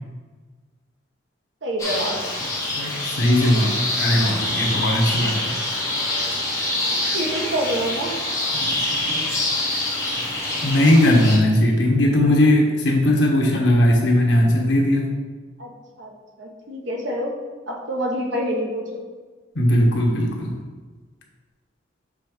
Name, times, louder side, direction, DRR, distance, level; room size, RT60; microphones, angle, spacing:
voice 1, 1.6-2.2 5.9-6.0 6.9-8.1 15.6-15.7 16.0-17.3 17.7-19.0, right 1 dB, 75° right, -1 dB, 1.2 m, -27 dB
sound 1, 1.8-11.4, left 1 dB, 15° left, 1.6 m, -25 dB
voice 2, 2.8-5.5 8.5-9.4 10.6-15.1 19.5-20.6, left 1 dB, 75° left, -1 dB, 1.3 m, -19 dB
6.8 x 3.4 x 5.2 m, 1.4 s
head